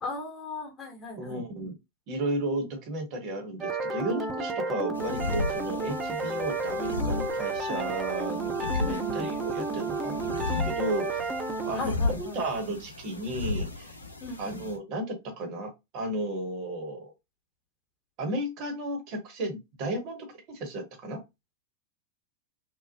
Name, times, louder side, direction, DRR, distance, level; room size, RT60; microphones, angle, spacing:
voice 1, 0.0-1.4 6.2-6.4 8.8-9.3 11.7-12.4 14.2-14.6, left 2 dB, 25° left, 1.0 m, -37 dB
voice 2, 1.2-1.7 2.1-11.2 11.6-13.9 14.4-17.1 18.2-21.2, right 1 dB, 40° right, 1.0 m, -34 dB
sound 1, 3.6-11.7, right 3 dB, 15° right, 0.6 m, -31 dB
sound 2, 4.9-14.8, left 3 dB, 85° left, 0.5 m, -35 dB
2.9 x 2.0 x 2.6 m
figure-of-eight pair, 90°, 0 cm